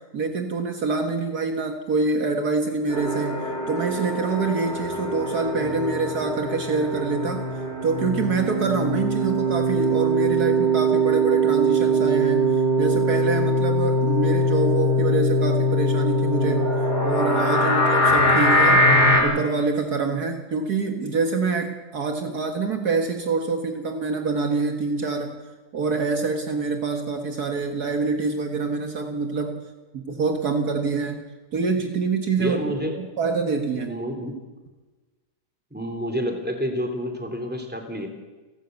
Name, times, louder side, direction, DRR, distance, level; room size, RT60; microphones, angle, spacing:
voice 1, 0.1-7.4 7.8-18.8 19.2-25.4 25.7-29.7 29.9-32.6 32.9-34.0, right 4 dB, 60° right, 5 dB, 2.0 m, -26 dB
sound 1, 2.9-19.2, right 1 dB, 30° left, 5.9 m, -22 dB
voice 2, 32.4-33.0 33.9-34.4 35.7-38.1, equal, 5° right, 4 dB, 3.1 m, -28 dB
29.5 x 12.0 x 8.2 m, 1.2 s
omnidirectional pair, 1.9 m